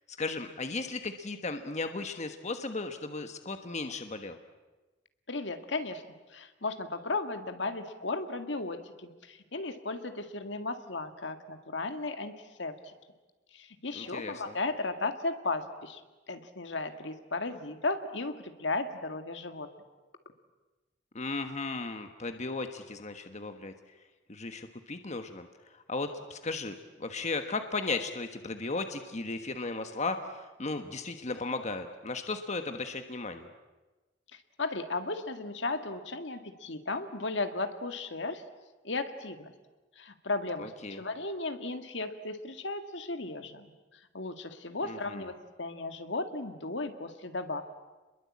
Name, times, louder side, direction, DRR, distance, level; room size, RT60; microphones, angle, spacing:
voice 1, 0.2-4.4 13.9-14.5 21.1-23.7 24.3-33.5 40.6-41.0 44.8-45.2, left 3 dB, 40° left, 7 dB, 1.4 m, -36 dB
voice 2, 5.3-6.0 6.3-12.7 13.5-16.0 16.3-19.7 34.3-38.4 38.8-39.5 40.0-43.7 44.1-45.3 45.6-47.6, left 3 dB, 70° left, 7 dB, 2.0 m, -35 dB
29.5 x 22.0 x 8.6 m, 1.2 s
head